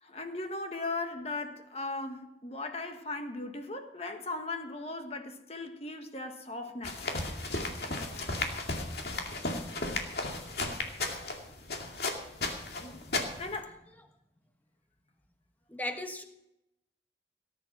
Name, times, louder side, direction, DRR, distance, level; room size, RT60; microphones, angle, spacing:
voice 1, 0.0-7.1 12.8-13.1 13.4-13.8, left 2 dB, 35° left, 1.4 m, -38 dB
sound 1, 6.8-13.6, left 2 dB, 60° left, 2.3 m, -34 dB
voice 2, 15.7-16.2, left 1 dB, 10° left, 1.3 m, -36 dB
18.5 x 10.5 x 6.0 m
head